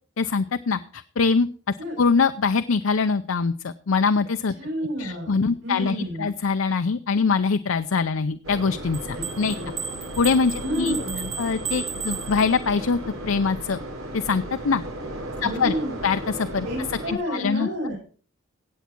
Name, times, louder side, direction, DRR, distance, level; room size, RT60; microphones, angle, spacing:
voice 1, 0.2-4.5 5.0-9.6 10.2-10.9 11.4-13.8 14.1-14.8 15.4-15.8 16.0-16.7 17.1-17.7, left 5 dB, 75° left, 10 dB, 0.5 m, -23 dB
voice 2, 4.6-5.4 5.6-6.3 9.1-9.2 9.5-9.8 10.6-11.3 15.4-15.9 16.6-17.9, equal, 65° right, -4 dB, 5.7 m, -30 dB
sound 1, 8.4-17.1, right 1 dB, 85° right, 4.0 m, -35 dB
sound 2, 8.9-12.9, right 6 dB, 30° right, 1.2 m, -35 dB
16.5 x 8.2 x 4.5 m, 0.41 s
head